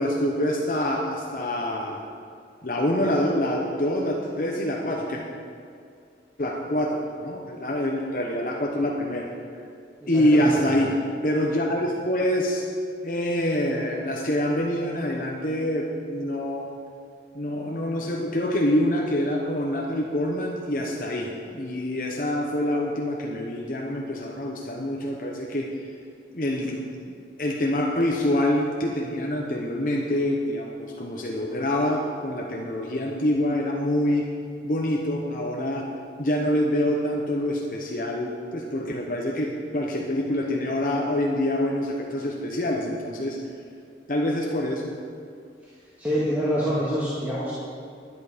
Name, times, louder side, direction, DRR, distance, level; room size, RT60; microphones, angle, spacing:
voice 1, 0.0-2.0 2.6-5.2 6.4-9.3 10.1-12.6 13.0-16.8 17.3-25.7 26.3-26.9 27.4-34.3 34.6-35.9 36.2-43.4 44.1-44.9, left 1 dB, 50° left, -1 dB, 1.0 m, -26 dB
voice 2, 10.0-10.5 46.0-47.6, equal, 10° right, -10 dB, 1.8 m, -26 dB
11.0 x 10.0 x 5.1 m, 2.3 s
head